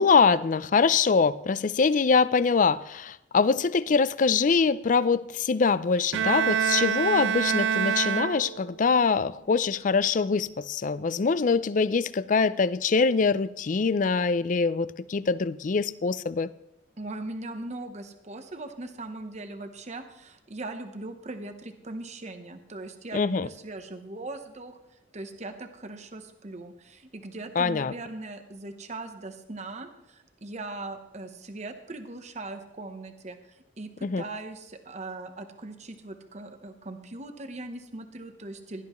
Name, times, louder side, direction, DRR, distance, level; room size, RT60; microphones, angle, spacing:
voice 1, 0.0-16.5 23.1-23.5 27.6-27.9 34.0-34.2, left 5 dB, 45° left, 0.4 m, -24 dB
Bowed string instrument, 6.1-8.8, right 7 dB, 90° right, 0.3 m, -26 dB
voice 2, 17.0-24.8 25.1-38.8, right 2 dB, 40° right, 1.0 m, -40 dB
16.5 x 12.0 x 3.1 m
head